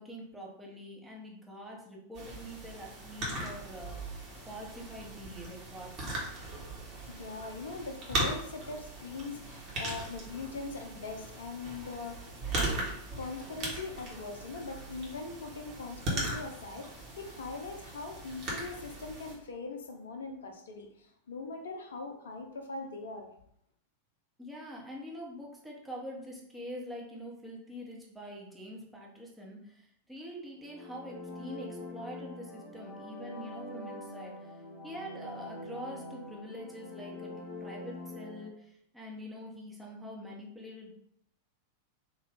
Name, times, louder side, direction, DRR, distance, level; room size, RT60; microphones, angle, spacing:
voice 1, 0.0-4.2 4.5-6.1 24.4-40.9, equal, 5° right, 1.0 m, -45 dB
sound 1, 2.2-19.4, right 1 dB, 40° right, 1.3 m, -39 dB
voice 2, 6.4-23.3, left 3 dB, 65° left, 0.7 m, -41 dB
sound 2, 30.6-38.5, left 1 dB, 30° left, 1.0 m, -44 dB
3.6 x 2.5 x 3.5 m
figure-of-eight pair, 90°, 0 cm